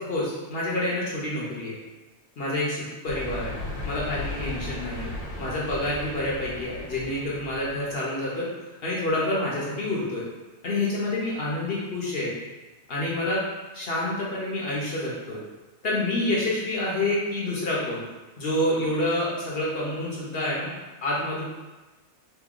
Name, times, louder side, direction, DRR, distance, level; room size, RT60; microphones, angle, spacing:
voice 1, 0.0-1.8 2.4-2.8 3.0-3.6 3.8-5.1 5.4-8.5 8.8-10.3 10.6-12.4 12.9-13.4 13.7-15.4 15.8-18.0 18.4-20.7 21.0-21.4, left 1 dB, 50° left, -5 dB, 0.9 m, -28 dB
sound 1, 3.1-7.9, left 2 dB, 85° left, 1.2 m, -36 dB
3.0 x 2.6 x 3.7 m, 1.2 s
omnidirectional pair, 1.5 m